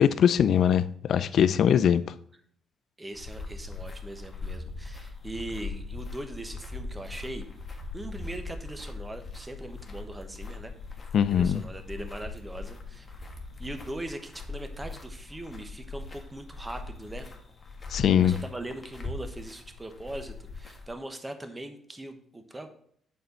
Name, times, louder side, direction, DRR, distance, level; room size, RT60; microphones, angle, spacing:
voice 1, 0.0-2.0 11.1-11.6 17.9-18.4, left 9 dB, 65° left, 0.4 m, -21 dB
voice 2, 3.0-7.5 7.9-10.7 11.3-13.1 13.6-17.3 18.2-22.7, right 1 dB, 15° right, 1.0 m, -40 dB
sound 1, 3.1-20.9, left 3 dB, 30° left, 1.3 m, -40 dB
7.0 x 4.4 x 5.2 m
cardioid pair, 90°, 0 cm